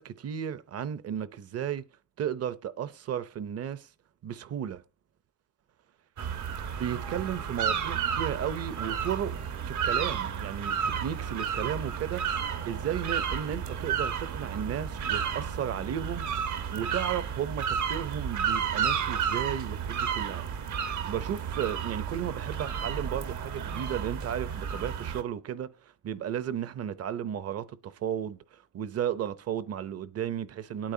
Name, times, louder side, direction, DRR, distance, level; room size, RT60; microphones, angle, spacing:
voice 1, 0.0-1.8 2.2-3.9 4.2-4.8 6.8-9.3 9.6-20.4 20.7-30.9, right 9 dB, 55° right, 0.8 m, -34 dB
sound 1, 6.2-25.2, right 7 dB, 75° right, 1.3 m, -32 dB
18.5 x 8.8 x 2.8 m
cardioid pair, 130°, 30 cm